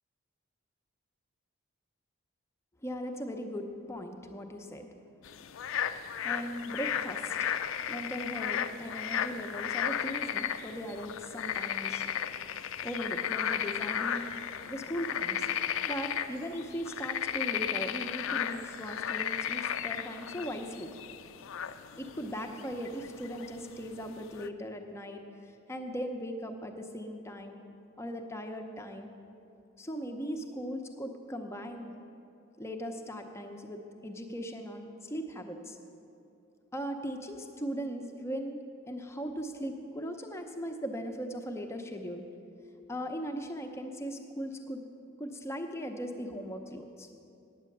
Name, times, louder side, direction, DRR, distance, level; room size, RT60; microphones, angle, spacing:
voice 1, 2.8-4.9 6.0-7.4 7.9-12.0 12.8-14.3 14.7-15.5 15.8-20.9 22.0-27.6 28.0-29.1 29.8-31.9 32.6-35.8 36.7-38.6 38.9-42.3 42.9-44.8 45.2-47.1, equal, 10° left, 4 dB, 0.6 m, -38 dB
sound 1, 5.2-24.5, left 9 dB, 65° left, 0.4 m, -35 dB
9.2 x 8.6 x 6.6 m, 2.7 s
head